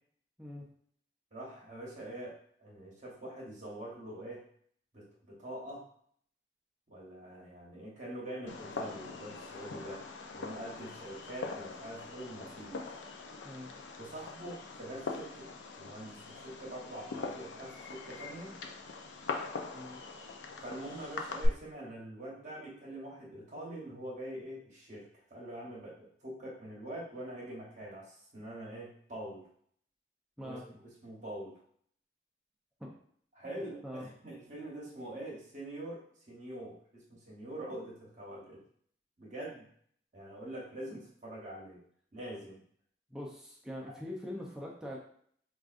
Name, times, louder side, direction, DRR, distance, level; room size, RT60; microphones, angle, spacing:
voice 1, 1.3-4.4 4.9-5.8 6.9-10.0 10.3-12.8 14.0-15.5 15.8-18.5 20.6-29.5 30.4-31.6 33.3-38.6 39.2-39.7 40.1-41.8 42.1-42.6 43.8-43.9, right 1 dB, 45° right, -5 dB, 1.0 m, -44 dB
Fireworks, 8.5-21.5, left 4 dB, 85° left, 0.5 m, -42 dB
voice 2, 43.1-45.0, left 1 dB, 5° right, -3 dB, 0.5 m, -43 dB
4.7 x 2.4 x 2.4 m, 0.63 s
head